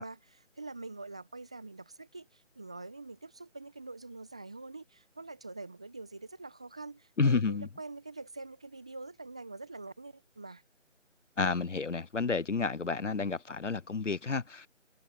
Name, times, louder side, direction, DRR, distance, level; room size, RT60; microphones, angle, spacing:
voice 1, 0.0-10.6, right 3 dB, 5° right, 1.1 m, -45 dB
voice 2, 7.2-7.7 11.4-14.7, left 4 dB, 70° left, 0.9 m, -30 dB
figure-of-eight pair, 160°, 37 cm